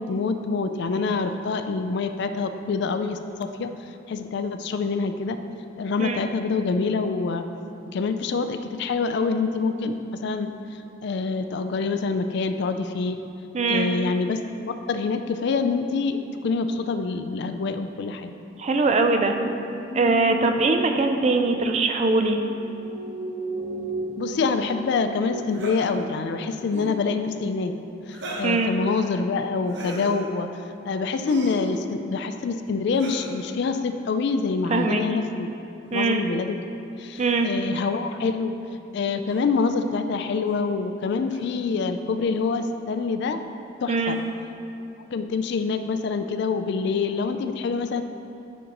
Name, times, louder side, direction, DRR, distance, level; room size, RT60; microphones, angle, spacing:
voice 1, 0.1-3.7 4.1-5.4 5.8-7.5 7.9-13.2 13.7-16.2 16.4-18.3 24.2-27.7 28.1-30.5 30.8-35.5 35.9-36.6 37.0-38.5 38.9-43.4 43.8-44.2 45.1-48.0, left 4 dB, 60° left, 8 dB, 0.3 m, -26 dB
voice 2, 13.5-13.9 18.6-19.4 19.9-22.4 28.4-28.7 34.7-35.0 35.9-36.2 37.2-37.5 43.9-44.2, right 3 dB, 35° right, 5 dB, 0.4 m, -22 dB
sound 1, 18.7-29.1 29.3-29.6, right 2 dB, 10° right, 1.1 m, -36 dB
sound 2, 25.5-25.8 26.6-27.0 28.1-28.6 29.7-30.2 31.2-31.7 32.9-33.3 34.6-34.9 36.0-36.2 37.1-37.6 39.3-39.4 40.5-40.6 41.3-41.5 42.3-42.5 44.0-44.4, right 1 dB, 60° right, 0.9 m, -38 dB
9.9 x 5.2 x 2.9 m, 2.7 s
head